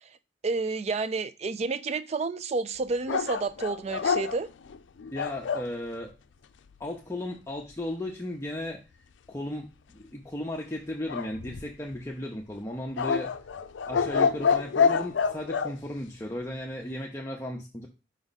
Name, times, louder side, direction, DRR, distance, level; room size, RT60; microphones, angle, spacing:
voice 1, 0.4-4.5, right 4 dB, 35° right, 0.4 m, -30 dB
sound 1, 3.1-5.7 11.1-12.0 13.0-15.7, left 6 dB, 90° left, 0.5 m, -27 dB
voice 2, 5.1-6.1 6.8-8.8 9.3-13.3 13.9-17.9, left 1 dB, 15° left, 0.6 m, -35 dB
5.3 x 4.9 x 4.0 m
head